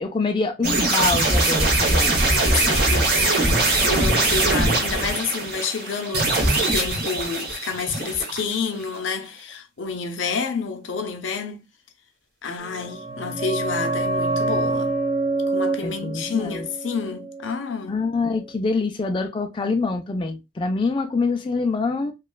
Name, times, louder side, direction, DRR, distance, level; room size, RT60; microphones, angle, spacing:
voice 1, 0.0-2.2 15.8-16.7 17.9-22.1, left 3 dB, 25° left, 0.3 m, -25 dB
sound 1, 0.6-8.7, right 2 dB, 55° right, 1.0 m, -21 dB
voice 2, 2.3-11.6 12.4-15.0 15.5-18.0, left 5 dB, 80° left, 0.6 m, -29 dB
sound 2, 12.7-18.1 18.4-18.5, right 2 dB, 25° right, 0.6 m, -27 dB
3.0 x 2.3 x 2.2 m
head